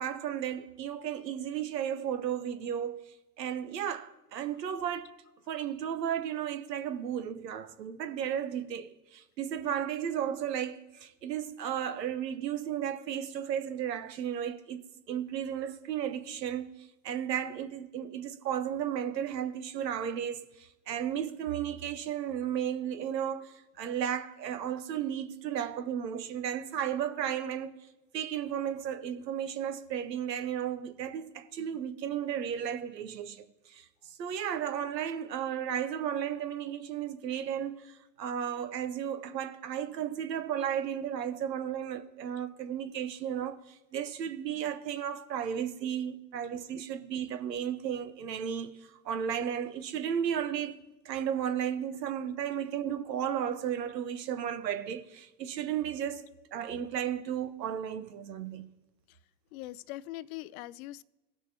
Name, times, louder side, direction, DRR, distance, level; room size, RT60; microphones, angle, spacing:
voice 1, 0.0-5.2 5.5-16.7 17.0-27.8 28.1-33.4 33.7-33.8 34.2-43.6 43.9-48.7 49.0-50.8 51.0-56.2 56.5-58.7, right 9 dB, 85° right, 0.9 m, -34 dB
voice 2, 59.5-61.0, left 16 dB, 60° left, 0.5 m, -42 dB
18.0 x 6.2 x 2.7 m
hypercardioid pair, 90°, 49 cm